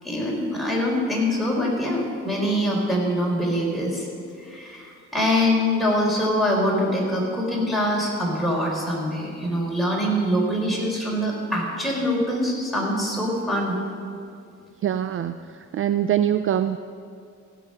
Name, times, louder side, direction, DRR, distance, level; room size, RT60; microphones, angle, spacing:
voice 1, 0.0-13.8, equal, ahead, -3 dB, 3.7 m, -24 dB
voice 2, 14.8-16.8, right 10 dB, 45° right, 11 dB, 0.4 m, -24 dB
16.0 x 6.1 x 6.5 m, 2.4 s
cardioid pair, 90°, 30 cm